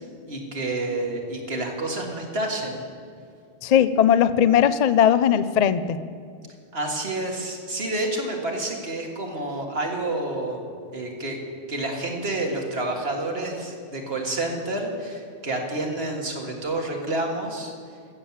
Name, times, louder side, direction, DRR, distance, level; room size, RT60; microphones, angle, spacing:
voice 1, 0.3-2.8 6.7-10.6 10.9-11.4 11.7-17.7, right 2 dB, 80° right, 1 dB, 2.0 m, -29 dB
voice 2, 3.6-6.0, left 9 dB, 55° left, 14 dB, 0.5 m, -18 dB
14.5 x 7.2 x 7.3 m, 2.3 s
omnidirectional pair, 1.0 m